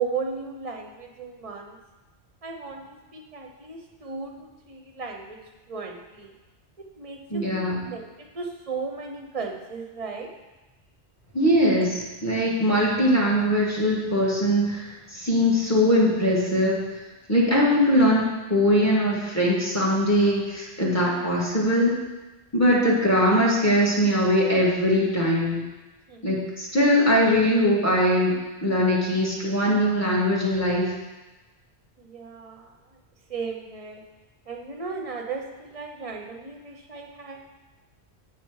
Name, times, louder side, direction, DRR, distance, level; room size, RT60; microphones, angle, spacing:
voice 1, 0.0-1.8 2.4-2.8 3.1-5.4 5.7-6.3 6.8-10.3 26.1-26.2 32.0-32.7 33.3-34.0 34.5-37.4, right 5 dB, 35° right, 2 dB, 0.7 m, -35 dB
voice 2, 7.3-7.8 11.3-16.8 17.3-22.0 22.5-25.6 26.2-28.4 28.6-30.9, equal, 15° left, -5 dB, 1.5 m, -21 dB
6.8 x 4.9 x 4.7 m, 1.1 s
omnidirectional pair, 1.2 m